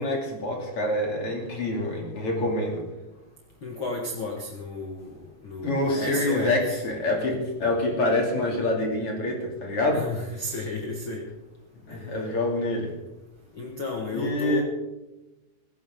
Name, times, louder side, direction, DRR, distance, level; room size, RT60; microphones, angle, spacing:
voice 1, 0.0-2.9 5.6-10.0 11.9-12.9 14.1-14.6, left 1 dB, 35° left, 0 dB, 3.0 m, -26 dB
voice 2, 3.6-6.8 9.9-11.3 11.9-12.0 13.5-14.6, left 2 dB, 90° left, 1 dB, 1.1 m, -33 dB
17.0 x 16.0 x 3.8 m, 1.0 s
omnidirectional pair, 5.1 m